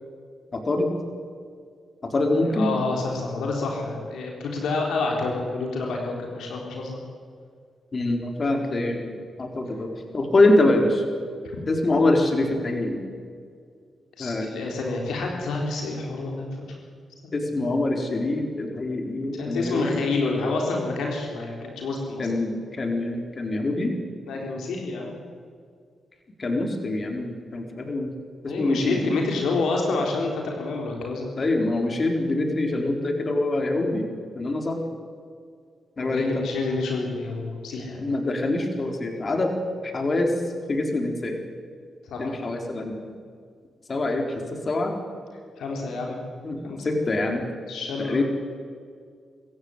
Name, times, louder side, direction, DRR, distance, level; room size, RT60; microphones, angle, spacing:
voice 1, 0.5-0.9 2.0-2.7 7.9-9.9 10.1-11.0 11.7-13.0 14.2-14.5 17.3-20.0 22.2-23.9 26.4-28.1 28.4-29.1 31.4-34.1 34.3-34.8 36.0-36.5 38.0-39.5 39.8-40.3 40.7-41.4 42.2-43.0 43.9-45.0 46.4-47.4 48.0-48.2, left 2 dB, 45° left, 3 dB, 4.2 m, -24 dB
voice 2, 2.4-7.0 12.1-12.2 14.2-16.5 19.3-22.3 24.3-25.1 28.5-31.3 36.0-38.0 42.1-42.3 45.6-46.2 46.6-46.8 47.7-48.2, left 3 dB, 85° left, 0 dB, 4.0 m, -28 dB
24.5 x 15.5 x 9.9 m, 2.1 s
supercardioid pair, 50°, 0 cm